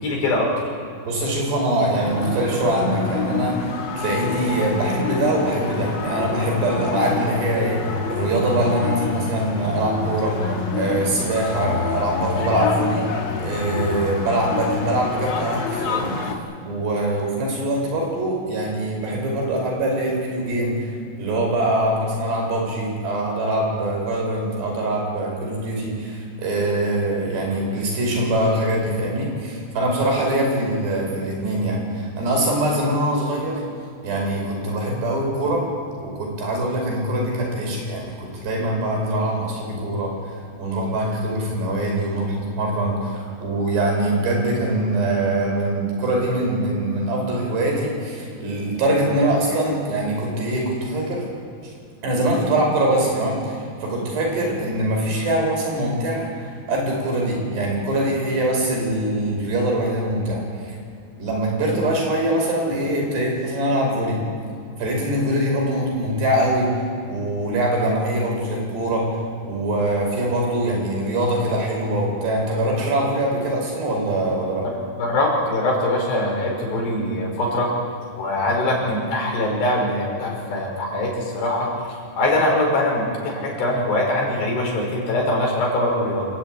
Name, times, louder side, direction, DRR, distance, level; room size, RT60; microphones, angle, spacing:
voice 1, 0.0-0.5 75.0-77.7 78.1-81.7 82.2-86.3, left 1 dB, 85° left, -1 dB, 7.6 m, -22 dB
voice 2, 1.1-10.4 10.7-13.0 13.4-16.2 16.7-33.6 34.0-35.7 36.0-40.1 40.6-51.2 52.0-60.8 61.2-64.2 64.8-66.7 67.1-69.1 69.4-74.7, right 1 dB, 85° right, 0 dB, 7.5 m, -23 dB
sound 1, 1.9-16.3, left 4 dB, 45° left, 1.7 m, -27 dB
28.5 x 14.0 x 9.2 m, 2.4 s
omnidirectional pair, 4.7 m